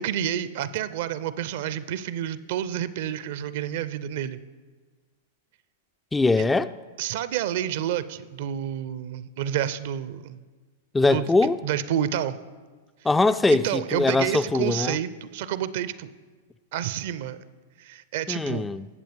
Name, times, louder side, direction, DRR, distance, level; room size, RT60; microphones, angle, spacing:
voice 1, 0.0-4.4 7.0-10.4 11.0-11.3 11.6-12.4 13.5-16.1 16.7-17.4 17.8-18.7, right 10 dB, 55° right, 0.5 m, -29 dB
voice 2, 6.1-6.7 10.9-11.6 13.0-15.0 18.3-18.9, left 3 dB, 10° left, 0.3 m, -22 dB
20.5 x 7.6 x 3.5 m
figure-of-eight pair, 100°, 0 cm